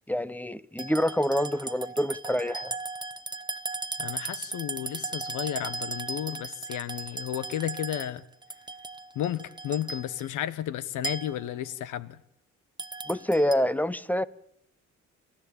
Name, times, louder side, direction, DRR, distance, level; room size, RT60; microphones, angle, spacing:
voice 1, 0.1-2.8 13.1-14.3, equal, 5° left, 0.9 m, -27 dB
sound 1, 0.8-10.3 11.0-11.5 12.8-13.6, right 3 dB, 15° right, 1.2 m, -37 dB
voice 2, 4.0-8.2 9.1-12.2, left 11 dB, 85° left, 1.3 m, -33 dB
29.0 x 13.5 x 8.8 m
cardioid pair, 90°, 30 cm